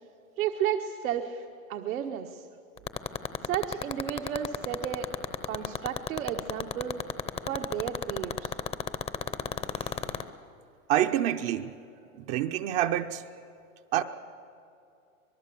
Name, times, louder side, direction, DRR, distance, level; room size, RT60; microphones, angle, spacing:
voice 1, 0.4-1.4 1.7-2.4 3.4-5.1 5.4-7.0 7.5-8.5, right 9 dB, 70° right, 1.4 m, -32 dB
sound 1, 2.8-10.2, left 7 dB, 15° left, 0.7 m, -29 dB
voice 2, 10.9-11.7 12.3-13.2 13.9-14.0, right 12 dB, 40° right, 0.8 m, -26 dB
25.5 x 19.5 x 7.0 m
hypercardioid pair, 130°, 42 cm